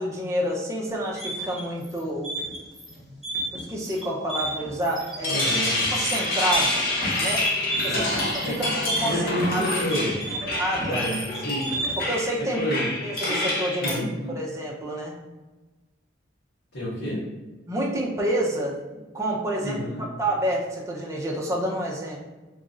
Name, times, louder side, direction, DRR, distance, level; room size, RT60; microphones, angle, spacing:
voice 1, 0.0-2.3 3.5-5.4 5.9-6.8 7.1-7.5 7.8-8.1 8.3-9.2 9.5-9.6 10.6-11.0 12.0-12.7 13.0-14.0 14.3-15.1 17.7-22.2, right 1 dB, 15° right, -3 dB, 0.6 m, -28 dB
sound 1, 1.1-12.2, right 1 dB, ahead, 1.1 m, -32 dB
sound 2, 5.0-14.0, left 2 dB, 50° left, 0.7 m, -27 dB
voice 2, 5.2-5.8 7.8-8.0 8.4-8.7 9.0-10.2 10.8-11.7 12.6-12.9 13.8-14.3 16.7-17.2 19.6-20.0, equal, 80° left, -12 dB, 1.5 m, -29 dB
3.1 x 2.5 x 3.7 m, 1.2 s
head